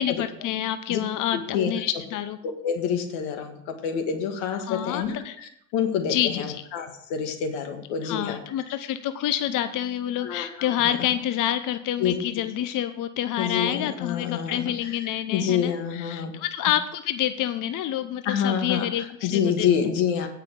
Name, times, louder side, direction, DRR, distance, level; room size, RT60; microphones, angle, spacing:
voice 1, 0.0-2.4 4.6-5.4 6.1-6.7 8.0-19.7, left 11 dB, 50° left, 11 dB, 0.7 m, -28 dB
voice 2, 1.3-1.7 2.4-8.4 10.2-10.5 10.8-11.0 12.0-12.1 13.4-14.7 15.3-16.3 18.2-18.9 19.2-20.3, left 7 dB, 85° left, 6 dB, 1.6 m, -27 dB
9.0 x 5.6 x 6.8 m, 0.74 s
supercardioid pair, 90°, 40 cm